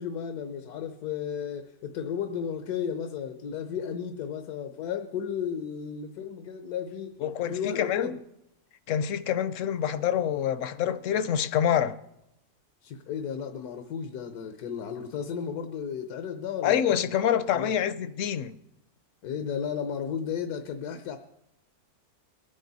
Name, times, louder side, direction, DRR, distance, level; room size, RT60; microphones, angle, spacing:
voice 1, 0.0-7.2 7.5-8.1 12.8-17.1 17.5-17.7 19.2-21.2, left 7 dB, 80° left, 1.3 m, -34 dB
voice 2, 7.2-8.2 8.9-12.0 16.6-18.6, left 9 dB, 65° left, 0.9 m, -26 dB
22.0 x 9.4 x 4.1 m
omnidirectional pair, 1.6 m